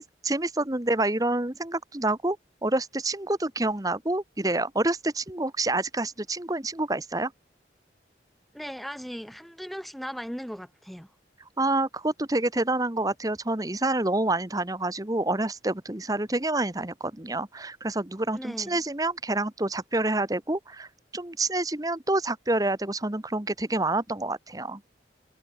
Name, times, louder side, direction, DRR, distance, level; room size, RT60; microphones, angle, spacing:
voice 1, 0.0-2.4 2.6-7.3 11.6-20.9 21.1-24.8, right 2 dB, 20° right, 1.2 m, -27 dB
voice 2, 8.5-11.1 18.3-18.8, equal, ahead, 3.9 m, -38 dB
head